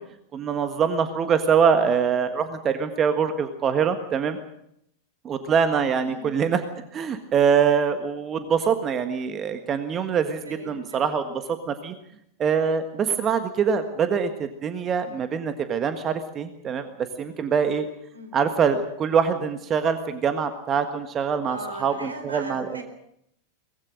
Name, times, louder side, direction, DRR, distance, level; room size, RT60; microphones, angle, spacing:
voice 1, 0.3-4.4 5.2-6.6 6.9-11.9 12.4-16.8 17.2-17.9 18.3-22.8, right 6 dB, 25° right, 9 dB, 1.6 m, -24 dB
voice 2, 10.5-11.0 18.1-18.3 21.5-22.8, right 2 dB, 75° right, 7 dB, 4.2 m, -38 dB
23.5 x 20.0 x 6.5 m, 0.76 s
figure-of-eight pair, 90°, 0 cm